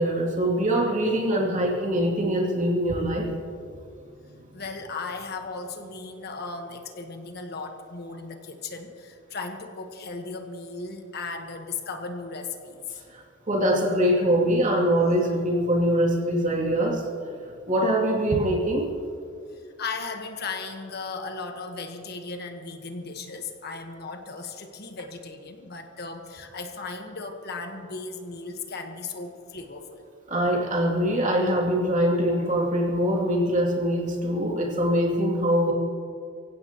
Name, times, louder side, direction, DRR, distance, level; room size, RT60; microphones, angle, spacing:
voice 1, 0.0-3.3 13.1-17.1 17.4-18.9 30.3-35.7, equal, 40° right, -2 dB, 2.7 m, -23 dB
voice 2, 4.5-12.9 19.8-30.1, left 4 dB, 55° left, 5 dB, 1.3 m, -36 dB
24.5 x 16.0 x 3.0 m, 2.4 s
head